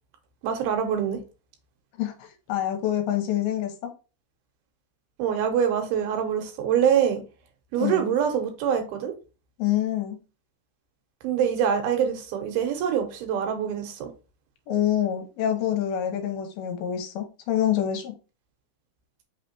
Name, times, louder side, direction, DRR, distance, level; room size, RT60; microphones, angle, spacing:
voice 1, 0.4-1.2 5.2-7.2 7.7-9.1 11.2-14.1, right 8 dB, 80° right, 2.6 m, -25 dB
voice 2, 2.0-3.7 7.8-8.1 9.6-10.2 14.7-18.1, left 11 dB, 80° left, 2.6 m, -26 dB
5.6 x 3.3 x 2.9 m
omnidirectional pair, 4.5 m